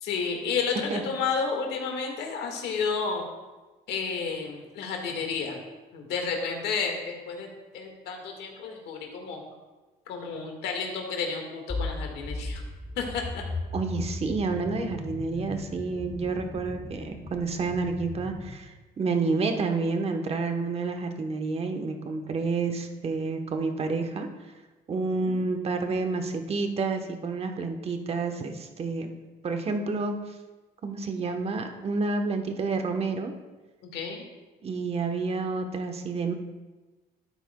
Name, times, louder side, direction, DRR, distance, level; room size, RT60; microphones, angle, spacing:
voice 1, 0.0-3.2 3.9-5.6 5.9-7.5 7.7-9.4 10.1-12.6 13.0-13.4 25.0-25.4 33.9-34.2, left 5 dB, 80° left, 2 dB, 1.7 m, -31 dB
sound 1, 11.7-18.6, left 3 dB, 20° left, 0.8 m, -37 dB
voice 2, 13.7-24.3 24.9-29.1 29.4-30.3 30.8-33.3 34.6-36.3, right 4 dB, 35° right, 6 dB, 1.0 m, -29 dB
12.0 x 9.0 x 2.2 m, 1.2 s
cardioid pair, 110°, 17 cm